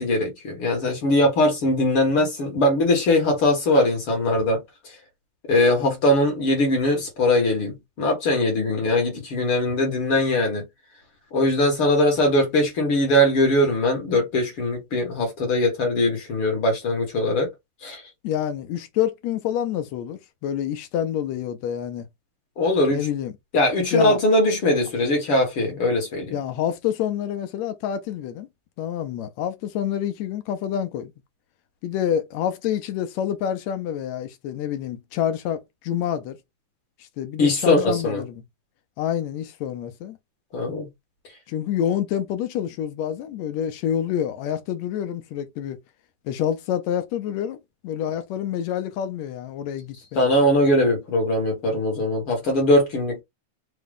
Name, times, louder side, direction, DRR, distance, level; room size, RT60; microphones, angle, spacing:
voice 1, 0.0-4.6 5.5-10.7 11.3-17.5 17.8-18.0 22.6-23.0 23.5-26.4 37.4-38.2 40.5-40.9 50.2-53.2, left 1 dB, 55° left, 1.9 m, -21 dB
voice 2, 18.2-22.1 22.9-23.4 23.9-24.2 26.3-28.5 28.8-31.1 31.8-36.4 37.2-38.4 39.0-40.2 41.5-45.8 46.3-47.6 47.8-50.3, left 10 dB, 80° left, 1.8 m, -27 dB
5.0 x 2.2 x 3.4 m
omnidirectional pair, 3.3 m